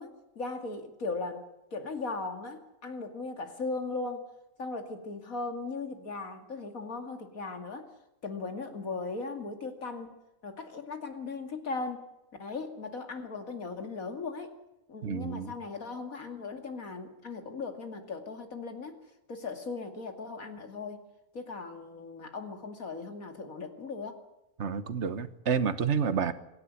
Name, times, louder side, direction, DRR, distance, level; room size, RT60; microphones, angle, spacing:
voice 1, 0.0-1.4 1.7-4.3 4.6-7.9 8.2-12.0 12.4-14.5 14.9-19.0 19.3-21.0 21.3-24.2, left 3 dB, 85° left, 6 dB, 2.9 m, -38 dB
voice 2, 15.0-15.5 24.6-26.3, right 6 dB, 55° right, 13 dB, 1.5 m, -29 dB
26.0 x 11.0 x 9.7 m, 0.93 s
omnidirectional pair, 1.4 m